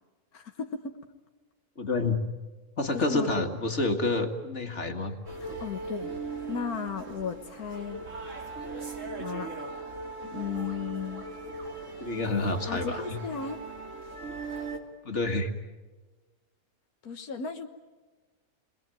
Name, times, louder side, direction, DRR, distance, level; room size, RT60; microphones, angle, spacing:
voice 1, 0.3-1.0 2.9-3.3 5.4-6.1 6.5-8.0 9.2-9.5 10.3-11.3 12.7-13.6 17.0-17.7, left 6 dB, 85° left, 5 dB, 1.9 m, -35 dB
voice 2, 1.8-2.2 2.8-5.1 12.0-13.0 15.0-15.5, left 2 dB, 50° left, 5 dB, 2.2 m, -28 dB
sound 1, 5.3-14.8, right 3 dB, 55° right, 3.1 m, -39 dB
29.5 x 21.5 x 9.2 m, 1.3 s
omnidirectional pair, 1.5 m